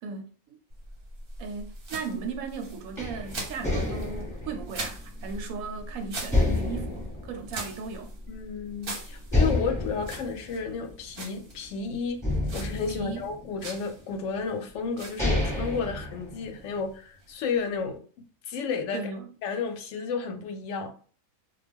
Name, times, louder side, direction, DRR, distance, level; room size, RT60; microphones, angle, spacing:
voice 1, 0.0-0.6 1.4-8.1 12.9-13.3 18.9-19.3, right 5 dB, 80° right, 1.0 m, -37 dB
sound 1, 0.7-18.0, right 1 dB, 50° right, 0.8 m, -42 dB
sound 2, 3.0-5.8 6.3-8.2 8.6-8.7 9.3-11.7 12.2-13.8 14.5-14.6 15.0-16.8, left 2 dB, ahead, 0.9 m, -29 dB
voice 2, 8.3-12.2 12.5-18.0 18.5-19.0 19.4-20.9, left 5 dB, 70° left, 0.8 m, -32 dB
2.3 x 2.2 x 3.4 m
omnidirectional pair, 1.5 m